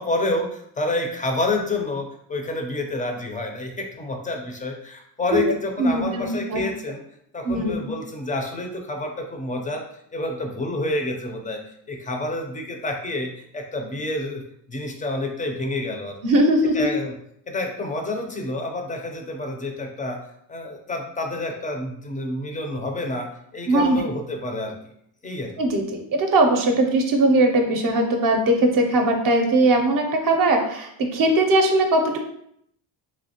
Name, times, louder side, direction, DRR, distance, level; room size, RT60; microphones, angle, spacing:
voice 1, 0.0-7.0 7.3-9.8 10.1-11.6 11.9-14.4 14.7-16.1 16.7-17.1 17.5-20.2 20.5-23.3 23.5-24.7 25.2-25.5, left 2 dB, 20° left, 2 dB, 0.3 m, -28 dB
voice 2, 5.8-6.6 7.4-7.9 16.2-16.9 23.7-24.0 25.6-32.2, right 2 dB, 50° right, 3 dB, 0.5 m, -20 dB
3.1 x 2.8 x 2.7 m, 0.72 s
cardioid pair, 140°, 44 cm